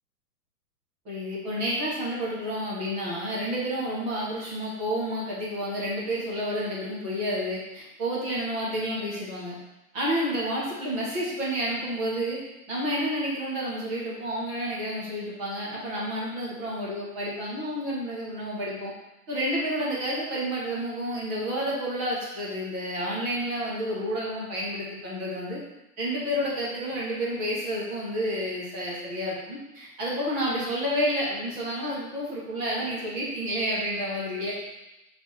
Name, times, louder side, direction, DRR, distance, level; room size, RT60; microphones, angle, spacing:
voice 1, 1.1-9.6 9.9-12.4 12.7-18.9 19.3-25.6 26.0-34.5, equal, 10° right, -6 dB, 0.5 m, -30 dB
6.6 x 3.3 x 4.5 m, 0.97 s
supercardioid pair, 170°, 47 cm